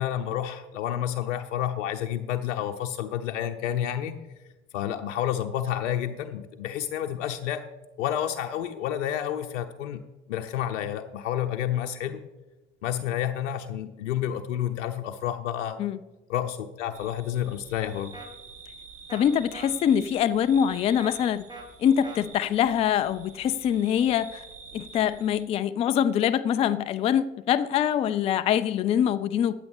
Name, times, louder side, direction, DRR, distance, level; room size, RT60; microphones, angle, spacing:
voice 1, 0.0-4.2 4.7-7.7 8.0-10.0 10.3-12.2 12.8-15.8 16.3-18.1, left 11 dB, 65° left, 5 dB, 0.7 m, -30 dB
sound 1, 16.9-25.4, right 4 dB, 70° right, 1.8 m, -48 dB
sound 2, 18.1-18.3 19.1-19.2 19.5-19.7 21.0-21.1 21.5-21.7 22.0-22.2, right 2 dB, 10° right, 1.5 m, -41 dB
voice 2, 19.1-21.4 21.8-24.4 24.7-29.5, left 9 dB, 15° left, 13 dB, 0.3 m, -24 dB
15.5 x 9.5 x 3.4 m, 1.1 s
figure-of-eight pair, 70°, 39 cm